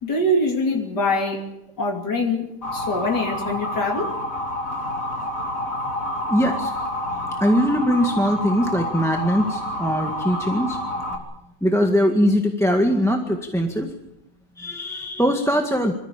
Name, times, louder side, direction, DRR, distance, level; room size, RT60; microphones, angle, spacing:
voice 1, 0.0-1.5 1.8-4.2, left 1 dB, 80° left, 3.6 m, -24 dB
Motor vehicle (road) / Siren, 2.6-11.2, left 1 dB, 50° left, 3.6 m, -28 dB
voice 2, 6.3-6.7 7.1-10.8 11.1-11.2 11.6-13.9 14.6-16.0, equal, ahead, 1.7 m, -21 dB
27.0 x 15.0 x 8.9 m
omnidirectional pair, 1.8 m